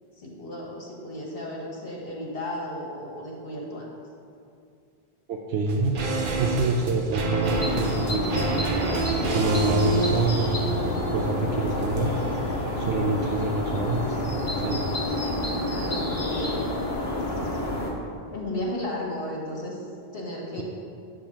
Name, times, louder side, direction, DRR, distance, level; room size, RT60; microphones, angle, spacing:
voice 1, 0.2-3.9 15.6-16.5 18.0-19.8 20.1-20.6, left 1 dB, 65° left, -3 dB, 1.6 m, -34 dB
voice 2, 5.3-6.0 6.4-8.7 9.3-10.6 11.1-12.2 12.8-14.2 14.6-14.8, right 3 dB, 85° right, 1 dB, 0.8 m, -26 dB
sound 1, 5.7-15.1 15.3-15.4, right 3 dB, 60° right, 0.8 m, -30 dB
sound 2, 7.4-17.9, left 1 dB, 50° left, 1.5 m, -29 dB
8.5 x 3.7 x 6.0 m, 2.4 s
omnidirectional pair, 1.0 m